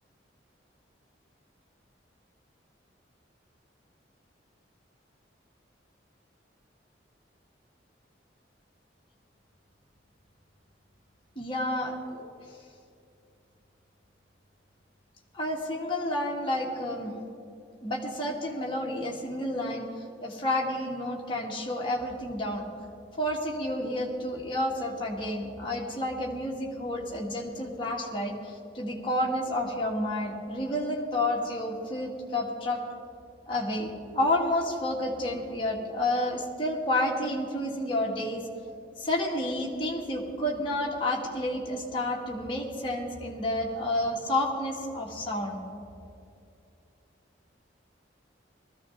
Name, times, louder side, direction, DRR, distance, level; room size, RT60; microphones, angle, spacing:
voice 1, 11.4-12.2 15.3-17.2 17.8-19.9 20.2-22.7 23.2-32.8 33.5-38.5 39.0-45.6, left 1 dB, 25° left, -3 dB, 2.0 m, -30 dB
19.5 x 14.0 x 3.6 m, 2.6 s
head